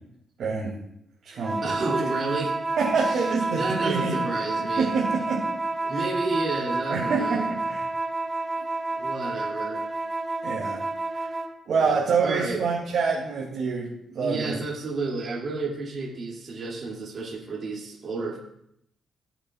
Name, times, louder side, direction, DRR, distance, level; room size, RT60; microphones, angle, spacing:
voice 1, 0.4-0.8 1.2-1.8 2.8-4.2 4.8-5.4 5.9-6.0 6.9-7.4 7.7-7.8 10.4-10.8 11.1-11.3 11.7-13.9 14.1-14.5, right 5 dB, 70° right, -6 dB, 2.7 m, -26 dB
sound 1, 1.4-11.6, right 2 dB, 20° right, 0.9 m, -30 dB
voice 2, 1.6-2.5 2.9-4.9 5.8-7.4 9.0-9.8 11.8-12.6 14.2-18.4, right 3 dB, 50° right, -4 dB, 2.7 m, -31 dB
17.0 x 8.0 x 2.5 m, 0.76 s
cardioid pair, 120°, 0 cm